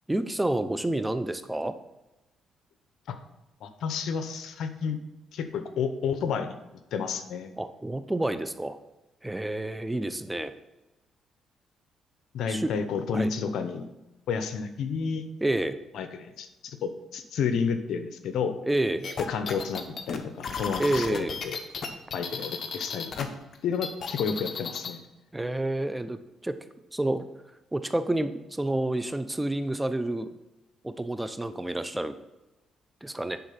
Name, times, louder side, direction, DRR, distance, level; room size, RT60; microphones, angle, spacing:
voice 1, 0.1-1.8 7.6-8.8 9.2-10.5 12.5-12.7 13.1-13.3 15.4-15.8 18.6-19.1 20.8-21.4 25.3-26.6 26.9-27.3 27.7-30.4 30.8-32.2 33.0-33.4, right 1 dB, 10° right, 11 dB, 0.6 m, -29 dB
voice 2, 3.6-5.0 5.3-6.5 6.9-7.5 12.3-13.9 14.3-15.2 15.9-18.6 19.2-21.6 22.1-23.3 23.6-25.0, left 6 dB, 75° left, 9 dB, 0.9 m, -31 dB
sound 1, 19.0-23.2 23.5-25.0, left 5 dB, 50° left, 1.1 m, -34 dB
9.7 x 3.9 x 5.8 m, 1.0 s
cardioid pair, 90°, 0 cm